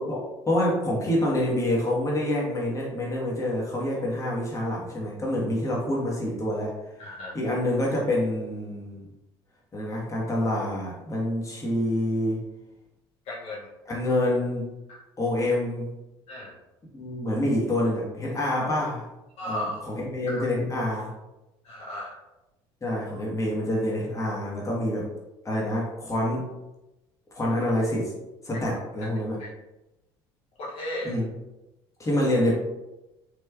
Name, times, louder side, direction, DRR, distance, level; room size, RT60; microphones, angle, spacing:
voice 1, 0.0-6.7 7.3-9.1 9.7-12.4 13.9-14.7 15.2-15.9 16.9-19.1 19.5-21.1 22.8-25.1 25.4-26.5 27.3-28.1 28.4-29.4 31.0-31.3 32.0-32.6, left 1 dB, 25° left, -4 dB, 1.2 m, -27 dB
voice 2, 7.0-7.4 13.3-13.7 16.3-16.6 19.4-19.8 20.3-20.5 21.6-22.2 28.5-28.6 29.4-29.5 30.6-31.2, left 1 dB, 60° left, -5 dB, 0.7 m, -35 dB
3.1 x 3.1 x 2.3 m, 0.98 s
hypercardioid pair, 75°, 12 cm